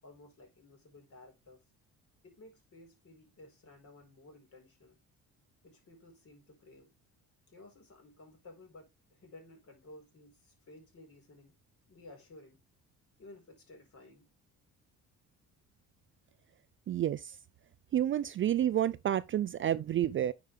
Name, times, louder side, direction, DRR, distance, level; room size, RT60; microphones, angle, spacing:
voice 1, 0.0-1.6 2.2-5.0 5.6-6.9 7.5-11.5 11.9-12.6 13.2-14.3, left 2 dB, 45° left, 4.6 m, -55 dB
voice 2, 16.9-17.3 17.9-20.3, right 11 dB, 40° right, 0.4 m, -29 dB
9.5 x 4.9 x 3.5 m
cardioid pair, 125°, 33 cm